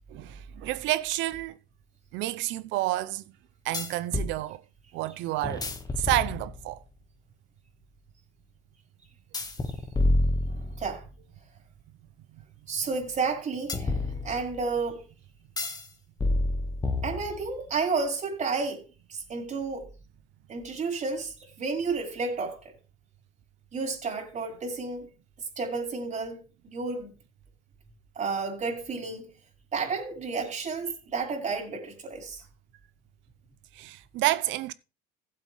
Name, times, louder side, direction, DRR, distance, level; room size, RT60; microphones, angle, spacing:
voice 1, 0.1-1.5 2.1-3.2 3.6-4.6 4.9-5.7 6.0-6.8 12.3-12.4 33.7-34.7, right 16 dB, 60° right, 0.8 m, -29 dB
sound 1, 1.3-1.4 3.7-4.4 5.4-6.7 9.3-11.0 13.7-14.7 15.6-15.9 16.2-17.6, left 2 dB, 20° left, 1.6 m, -29 dB
voice 2, 10.4-11.0 12.7-15.0 17.0-18.8 19.1-19.9 20.5-22.6 23.7-25.1 25.6-27.1 28.1-29.3 29.7-32.4, right 4 dB, 35° right, 4.8 m, -31 dB
15.5 x 8.1 x 3.3 m
supercardioid pair, 90°, 21 cm